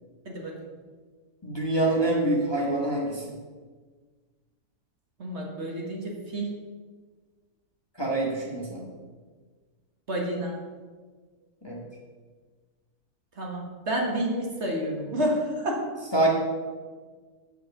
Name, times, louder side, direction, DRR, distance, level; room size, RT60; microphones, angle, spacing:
voice 1, 1.4-3.2 8.0-8.9 11.6-11.8 16.1-16.3, right 1 dB, 15° left, -3 dB, 1.4 m, -25 dB
voice 2, 5.2-6.5 10.1-10.6 13.4-15.9, right 1 dB, 45° right, -1 dB, 1.6 m, -29 dB
7.6 x 5.6 x 7.0 m, 1.5 s
omnidirectional pair, 1.6 m